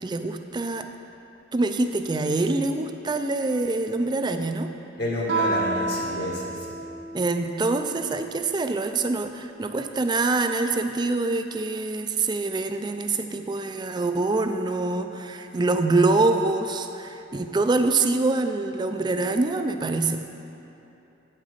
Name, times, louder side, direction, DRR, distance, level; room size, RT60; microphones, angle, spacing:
voice 1, 0.0-0.9 1.5-4.7 7.1-20.2, right 3 dB, 25° right, 7 dB, 0.4 m, -25 dB
voice 2, 5.0-6.7, left 1 dB, 55° left, -3 dB, 1.3 m, -29 dB
Guitar, 5.3-7.7, right 3 dB, 90° right, 1.0 m, -29 dB
8.8 x 7.5 x 5.0 m, 3.0 s
head